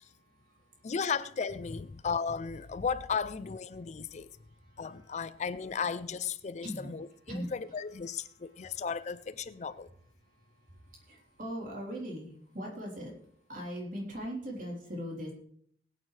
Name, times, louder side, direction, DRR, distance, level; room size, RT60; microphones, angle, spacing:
voice 1, 0.0-0.9 3.7-3.8 4.1-5.3 6.6-6.9 7.3-7.5 8.4-8.8 10.2-13.1 13.5-15.3, equal, 50° right, 3.6 m, -41 dB
voice 2, 0.8-4.3 4.8-9.9, left 6 dB, 40° left, 0.4 m, -35 dB
20.0 x 9.2 x 3.3 m
head